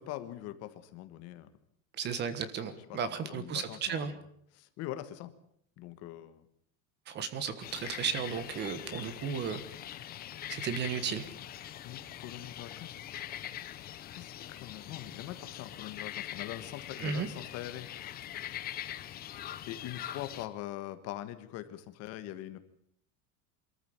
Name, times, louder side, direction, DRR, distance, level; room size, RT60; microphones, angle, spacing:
voice 1, 0.0-1.5 2.7-4.2 4.5-5.3 5.8-6.5 11.8-12.9 14.2-17.9 19.7-22.6, left 13 dB, 40° left, 11 dB, 1.5 m, -43 dB
voice 2, 2.0-4.1 7.1-9.6 10.5-11.2 17.0-17.3, right 6 dB, 25° right, 13 dB, 1.4 m, -34 dB
sound 1, 7.6-20.5, left 12 dB, 25° left, 0.9 m, -43 dB
24.5 x 14.0 x 8.8 m, 0.69 s
cardioid pair, 175°, 40 cm